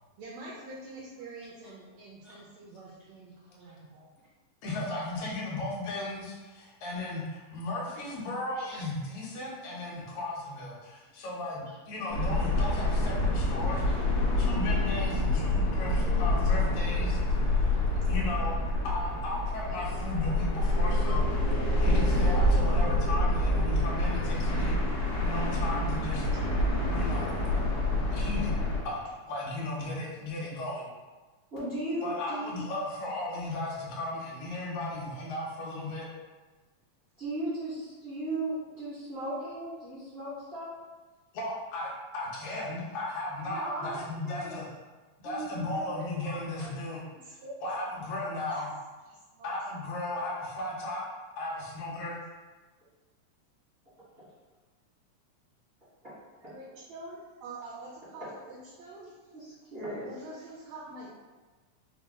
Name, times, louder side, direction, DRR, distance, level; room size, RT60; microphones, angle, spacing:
voice 1, 0.2-4.1 24.7-24.8 26.3-26.4 46.9-47.6 48.5-48.7 49.1-49.5 56.4-59.1 60.0-61.1, right 2 dB, 80° right, -4 dB, 1.5 m, -46 dB
voice 2, 4.6-17.7 18.1-18.6 18.8-26.3 26.9-27.6 28.1-28.5 28.8-29.0 29.3-30.9 32.0-36.1 41.3-44.6 45.2-47.0 47.6-48.7 49.4-51.0 51.4-52.2, left 2 dB, 70° left, -4 dB, 1.4 m, -36 dB
voice 3, 8.6-8.9 26.9-27.1 31.5-32.5 37.2-40.7 43.5-44.6 45.2-46.7 54.2-54.3 56.0-56.1 56.4-56.5 58.2-58.3 59.3-60.1, right 1 dB, 55° right, -12 dB, 0.8 m, -37 dB
sound 1, 12.1-28.8, left 1 dB, 90° left, 1.2 m, -27 dB
5.1 x 2.2 x 3.5 m, 1.3 s
omnidirectional pair, 3.6 m